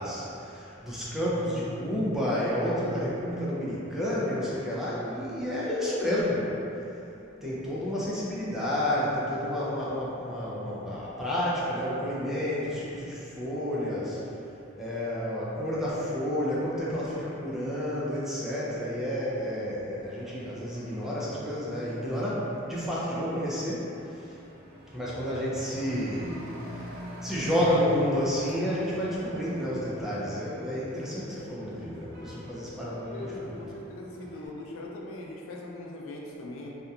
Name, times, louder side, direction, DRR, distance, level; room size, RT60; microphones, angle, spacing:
voice 1, 0.0-6.5 7.4-14.3 14.8-24.3 24.9-26.8 27.2-33.1 33.4-33.6, equal, ahead, -8 dB, 0.4 m, -30 dB
Truck / Accelerating revving vroom, 20.0-34.5, equal, 50° right, 0.6 m, -46 dB
voice 2, 32.9-36.8, left 2 dB, 90° left, -2 dB, 0.4 m, -40 dB
2.7 x 2.1 x 2.3 m, 2.9 s
head